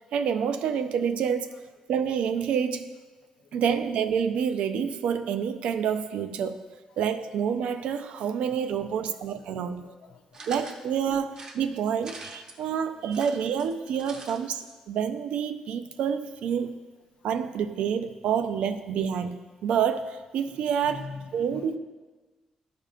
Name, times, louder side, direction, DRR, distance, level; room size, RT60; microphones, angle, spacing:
voice 1, 0.1-1.5 1.9-2.9 3.5-6.7 7.0-9.9 10.5-16.8 17.2-21.1 21.3-21.8, right 7 dB, 75° right, 9 dB, 0.4 m, -28 dB
voice 2, 9.5-10.5 14.1-14.2 20.9-21.8, left 4 dB, 55° left, 8 dB, 0.5 m, -44 dB
sound 1, 10.3-10.8 11.3-12.6 13.0-14.4 14.7-14.8 15.0-15.1, right 3 dB, 35° right, 0.8 m, -44 dB
13.0 x 5.1 x 2.5 m, 1.2 s
cardioid pair, 170°, 2 cm